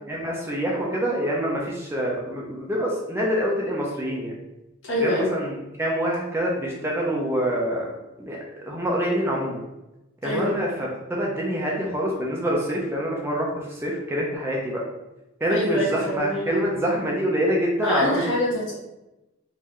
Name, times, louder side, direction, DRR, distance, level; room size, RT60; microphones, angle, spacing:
voice 1, 0.1-4.3 5.0-5.5 5.8-7.9 8.2-9.6 10.2-10.7 11.1-14.8 15.4-18.2, equal, 10° right, -3 dB, 0.5 m, -26 dB
voice 2, 4.8-5.3 10.2-10.5 15.5-16.5 17.8-18.8, left 1 dB, 65° left, -6 dB, 1.3 m, -25 dB
3.8 x 2.6 x 3.1 m, 0.96 s
head